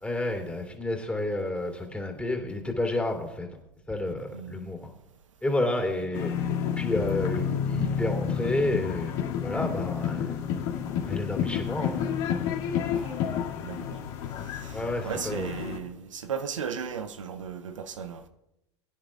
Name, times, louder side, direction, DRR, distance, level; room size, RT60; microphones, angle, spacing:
voice 1, 0.0-3.5 3.9-4.9 5.4-6.3 6.8-9.1 9.4-10.4 11.0-12.0 14.7-15.6, left 2 dB, 5° left, 3.2 m, -30 dB
voice 2, 4.3-4.6 13.0-13.2 13.6-14.0 14.6-18.3, right 7 dB, 85° right, 0.9 m, -36 dB
sound 1, 6.1-15.8, left 8 dB, 60° left, 2.5 m, -30 dB
23.0 x 9.9 x 2.5 m
hypercardioid pair, 90°, 16 cm